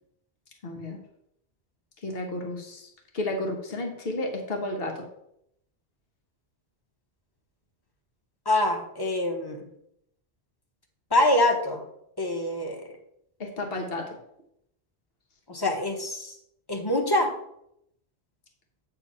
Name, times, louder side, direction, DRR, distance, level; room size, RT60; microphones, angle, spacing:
voice 1, 0.6-1.0 2.0-5.0 13.4-14.1, left 2 dB, 65° left, 2 dB, 1.5 m, -32 dB
voice 2, 8.4-9.7 11.1-11.8 12.2-12.8 15.5-16.4 16.7-17.3, left 1 dB, 25° left, 3 dB, 1.2 m, -25 dB
8.6 x 4.6 x 5.5 m, 0.76 s
omnidirectional pair, 1.0 m